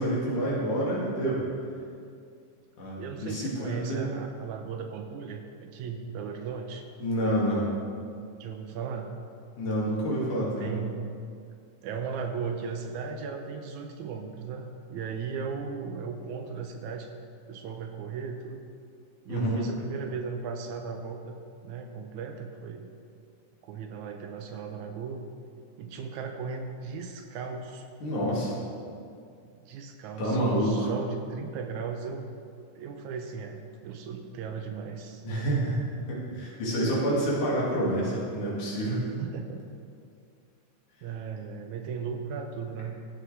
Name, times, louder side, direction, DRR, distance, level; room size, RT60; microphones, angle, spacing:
voice 1, 0.0-1.4 2.8-4.2 7.0-7.7 9.6-10.7 19.3-19.6 28.0-28.6 30.2-30.9 35.2-35.8 36.1-39.0, right 1 dB, 75° left, -5 dB, 3.6 m, -28 dB
voice 2, 3.0-6.8 8.4-9.1 10.6-11.0 11.8-17.1 17.5-18.6 19.3-21.4 21.6-22.9 23.6-25.2 25.8-27.9 29.4-32.3 32.8-35.2 39.2-39.7 41.0-43.0, right 5 dB, 80° right, 5 dB, 1.9 m, -36 dB
14.0 x 8.1 x 3.3 m, 2.4 s
omnidirectional pair, 3.6 m